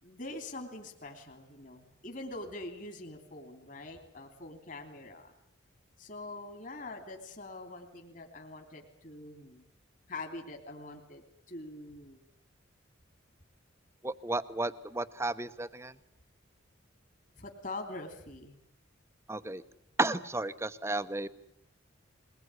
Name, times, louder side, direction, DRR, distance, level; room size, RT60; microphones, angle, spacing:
voice 1, 0.0-5.3 6.0-9.6 10.1-12.2 17.4-18.6, left 2 dB, 40° left, 3 dB, 3.1 m, -44 dB
voice 2, 14.0-15.9 19.3-19.6 20.0-21.3, right 2 dB, 15° right, 13 dB, 0.9 m, -33 dB
22.0 x 20.5 x 9.7 m, 0.73 s
head